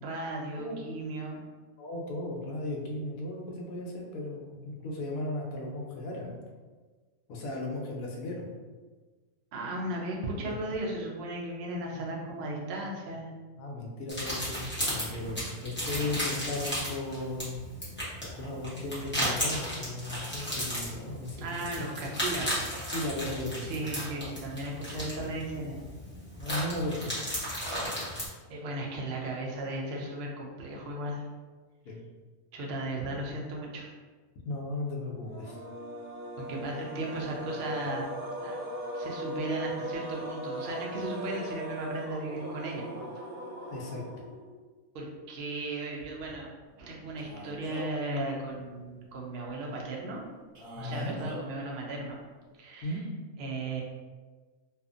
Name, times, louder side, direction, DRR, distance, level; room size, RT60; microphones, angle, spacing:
voice 1, 0.0-1.4 9.5-13.3 21.4-22.6 23.6-25.8 28.5-31.2 32.5-33.9 36.4-38.0 38.4-38.6 38.9-43.0 44.9-46.5 46.8-50.2 50.8-52.2 52.6-53.0 53.4-53.8, right 2 dB, 65° right, -2 dB, 0.6 m, -36 dB
voice 2, 1.8-6.4 7.3-8.5 10.3-10.6 11.9-12.6 13.6-17.6 18.3-21.8 22.9-23.9 24.7-25.7 26.4-27.1 31.8-32.0 34.4-35.6 43.7-44.0 50.8-51.2 52.8-53.0, left 2 dB, 75° left, 0 dB, 1.0 m, -36 dB
sound 1, 14.1-28.3, equal, 10° left, 0.5 m, -35 dB
sound 2, 35.2-44.6, right 1 dB, 90° right, 1.1 m, -38 dB
Male speech man speaking, 47.2-48.1 50.5-51.4, equal, 40° right, 1.1 m, -42 dB
2.6 x 2.4 x 2.4 m, 1.4 s
omnidirectional pair, 1.6 m